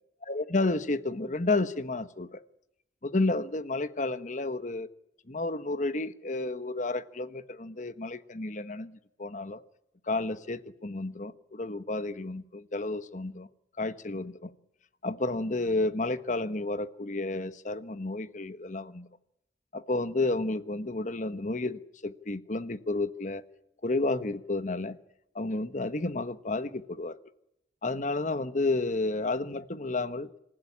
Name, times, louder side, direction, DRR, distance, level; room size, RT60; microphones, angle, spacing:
voice 1, 0.2-2.4 3.0-4.9 5.3-9.6 10.1-13.5 13.8-14.5 15.0-19.1 19.7-23.4 23.8-25.0 25.3-27.1 27.8-30.3, left 2 dB, 45° left, 12 dB, 1.1 m, -31 dB
27.0 x 15.5 x 9.8 m, 0.81 s
head